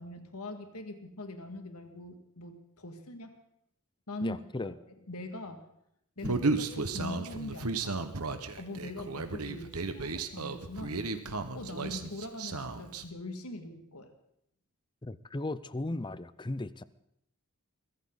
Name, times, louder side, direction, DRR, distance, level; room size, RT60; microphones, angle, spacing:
voice 1, 0.0-3.4 4.1-5.7 6.2-8.1 8.6-11.1 11.5-14.1, left 2 dB, 85° left, 6 dB, 2.2 m, -42 dB
voice 2, 4.2-4.7 6.2-6.4 15.0-16.8, left 2 dB, 20° left, 16 dB, 0.6 m, -36 dB
Human voice, 6.2-13.0, right 3 dB, 85° right, 1.5 m, -34 dB
22.5 x 15.5 x 4.0 m, 0.76 s
head